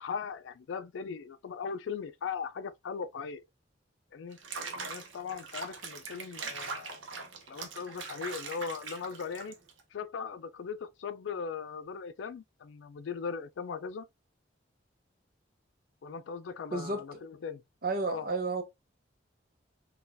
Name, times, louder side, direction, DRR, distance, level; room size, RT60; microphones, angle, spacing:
voice 1, 0.0-3.4 4.1-4.4 4.9-7.0 7.5-9.6 9.9-14.1 16.0-17.6 18.0-18.3, left 6 dB, 75° left, 0.4 m, -39 dB
Water / Bathtub (filling or washing), 4.3-9.8, right 4 dB, 85° right, 0.7 m, -41 dB
voice 2, 16.7-17.2 17.8-18.6, right 3 dB, 50° right, 0.7 m, -32 dB
3.8 x 2.3 x 2.5 m
head